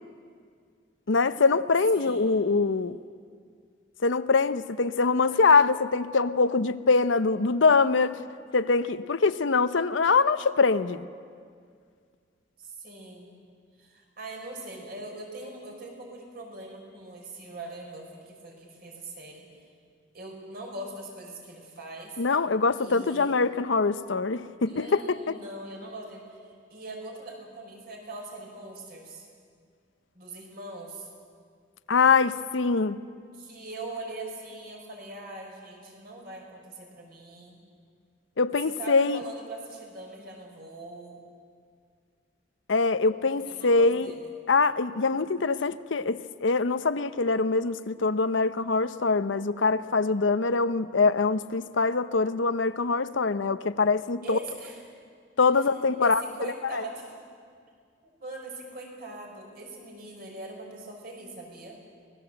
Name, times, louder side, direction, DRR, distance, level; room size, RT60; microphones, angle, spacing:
voice 1, 1.1-3.0 4.0-8.2 8.5-11.1 22.2-25.4 31.9-33.0 38.4-39.2 42.7-44.1 44.5-54.4 55.4-56.8, left 4 dB, 85° left, 13 dB, 0.7 m, -24 dB
voice 2, 1.9-2.3 12.6-13.3 13.8-19.5 20.1-22.2 22.8-23.3 24.7-26.4 26.7-29.3 30.1-31.1 33.3-37.6 38.6-41.2 43.4-44.3 54.2-54.8 55.5-57.2 58.0-61.8, right 2 dB, 55° right, 0 dB, 5.5 m, -42 dB
25.0 x 19.5 x 7.8 m, 2.1 s
head